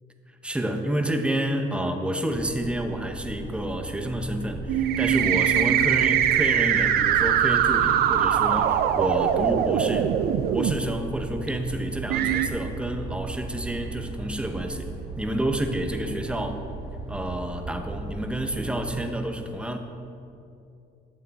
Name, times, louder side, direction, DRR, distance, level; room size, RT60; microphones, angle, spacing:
voice 1, 0.4-10.1 10.5-14.9 15.2-16.6 17.1-19.8, right 1 dB, 5° right, 5 dB, 0.8 m, -29 dB
sound 1, 2.3-18.9, right 2 dB, 30° right, 2.0 m, -38 dB
sound 2, 4.7-10.7 11.5-11.6 12.1-12.5, right 9 dB, 65° right, 0.5 m, -22 dB
12.0 x 7.2 x 4.1 m, 2.6 s
cardioid pair, 110°, 17 cm